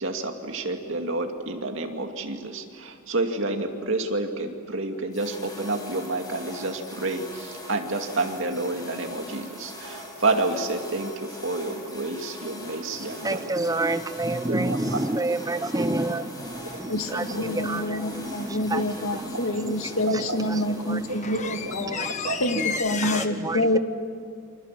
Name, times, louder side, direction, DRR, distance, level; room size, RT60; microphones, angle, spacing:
voice 1, 0.0-13.7 14.5-15.0 17.3-17.4 19.6-19.8 20.1-20.4 21.3-21.7 22.0-22.4, right 2 dB, 65° right, 4 dB, 2.5 m, -29 dB
sound 1, 5.1-23.1, left 1 dB, 20° left, 6.3 m, -42 dB
voice 2, 12.9-19.7 20.1-20.2 20.5-21.1 21.9-22.2 22.5-22.7 23.0-23.8, right 2 dB, 15° right, 11 dB, 0.8 m, -29 dB
voice 3, 15.9-16.5 16.9-22.0 22.4-23.8, left 1 dB, 80° left, 5 dB, 2.0 m, -27 dB
sound 2, 16.7-16.8 20.4-20.5 20.8-23.3, left 6 dB, 35° left, 1.4 m, -32 dB
29.0 x 25.5 x 7.6 m, 2.3 s
head